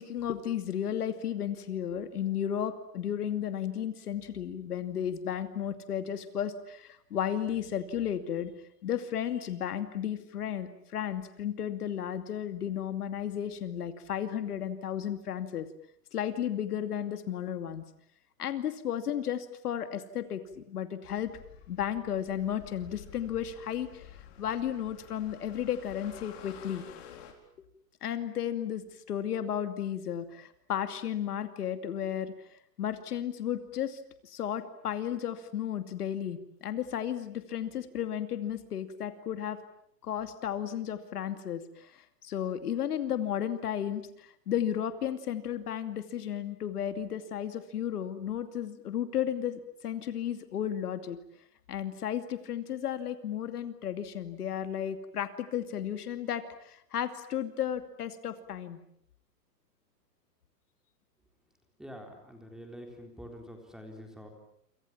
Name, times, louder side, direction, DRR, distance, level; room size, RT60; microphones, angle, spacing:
voice 1, 0.0-8.5 8.8-15.7 16.1-17.8 18.4-21.3 21.7-24.1 24.4-26.8 28.0-32.3 32.8-39.6 40.0-51.2 51.7-58.8, left 9 dB, 65° left, 9 dB, 2.6 m, -34 dB
sound 1, 21.0-27.3, left 9 dB, 40° left, 4.8 m, -50 dB
voice 2, 61.8-64.3, equal, ahead, 3 dB, 3.8 m, -46 dB
28.5 x 27.0 x 7.4 m, 0.68 s
hypercardioid pair, 160°, 49 cm